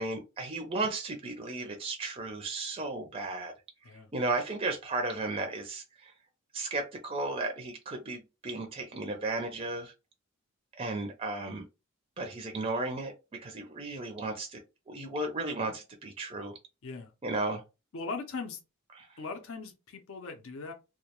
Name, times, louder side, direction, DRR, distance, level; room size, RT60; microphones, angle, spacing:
voice 1, 0.0-3.5 4.1-6.1 6.5-9.9 10.8-11.6 12.2-13.1 13.4-14.6 14.9-16.6 17.2-17.6 19.0-19.1, right 2 dB, 25° right, 0.4 m, -34 dB
voice 2, 17.9-18.6 19.2-20.7, left 4 dB, 60° left, 0.5 m, -39 dB
2.2 x 2.1 x 2.8 m
head